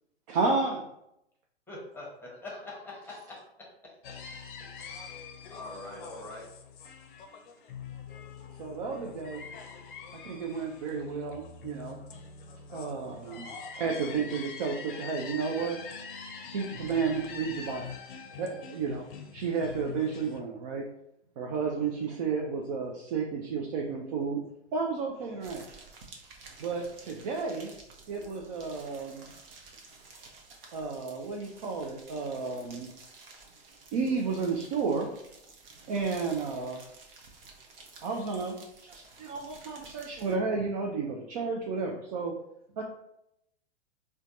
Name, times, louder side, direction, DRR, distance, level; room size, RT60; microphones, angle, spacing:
voice 1, 0.3-0.8 8.6-9.5 10.2-12.0 12.7-15.8 16.5-17.9 18.4-19.0 19.3-20.8 21.4-24.4 24.7-25.6 26.6-27.7 28.1-29.3 30.7-32.9 33.9-35.1 35.9-36.8 38.0-38.6 38.8-42.3 42.8-42.9, right 4 dB, 40° right, 1 dB, 0.5 m, -32 dB
voice 2, 1.7-3.4 5.5-6.4, left 2 dB, 5° left, -4 dB, 1.0 m, -43 dB
sound 1, 4.0-20.4, left 5 dB, 50° left, 0.6 m, -44 dB
voice 3, 10.6-11.1 12.3-12.6 12.9-13.6 14.5-14.6 16.8-17.7 18.9-19.5 20.0-20.3 21.8-22.3 25.2-25.4 26.4-27.3 27.6-27.9 28.4-28.7 29.8-30.4 33.4-33.8 35.7-36.1 37.4-38.1 39.2-39.8, right 3 dB, 90° right, 1 dB, 0.9 m, -62 dB
sound 2, 25.4-40.4, right 3 dB, 55° right, 0.8 m, -52 dB
4.4 x 2.2 x 2.6 m, 0.80 s
figure-of-eight pair, 110°, 33 cm